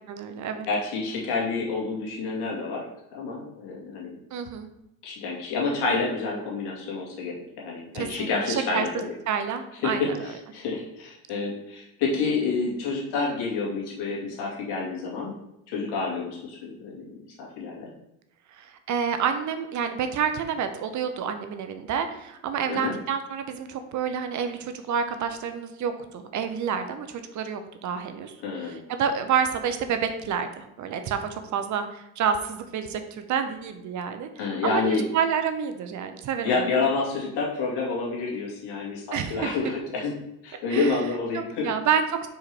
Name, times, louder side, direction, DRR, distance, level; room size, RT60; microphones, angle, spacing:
voice 1, 0.1-0.7 4.3-4.7 7.9-8.9 9.3-10.2 18.6-34.3 34.6-34.8 35.1-36.6 39.1-39.6 40.7-41.0 41.3-42.3, right 7 dB, 45° right, 8 dB, 0.8 m, -29 dB
voice 2, 0.7-2.9 3.1-4.2 5.0-9.1 9.8-15.3 15.7-17.9 22.7-22.9 28.4-28.8 34.4-35.0 36.4-40.1 40.4-41.7, left 4 dB, 65° left, -2 dB, 2.3 m, -28 dB
4.7 x 4.4 x 4.8 m, 0.87 s
supercardioid pair, 95°, 43 cm